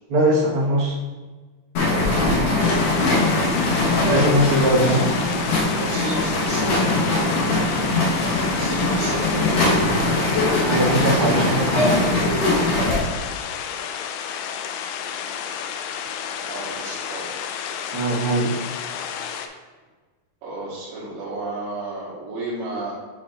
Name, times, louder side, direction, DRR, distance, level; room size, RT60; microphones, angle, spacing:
voice 1, 0.1-1.0 4.0-5.0 10.6-12.2 17.9-18.5, right 1 dB, 65° right, -6 dB, 1.3 m, -20 dB
sound 1, 1.7-13.0, left 2 dB, 65° left, 1.5 m, -21 dB
sound 2, 2.6-19.5, left 8 dB, 85° left, 2.7 m, -31 dB
voice 2, 4.7-5.1 5.8-6.8 8.5-10.0 16.4-17.3 20.4-22.9, right 2 dB, 85° right, -10 dB, 3.5 m, -32 dB
10.5 x 4.9 x 2.5 m, 1.3 s
omnidirectional pair, 4.7 m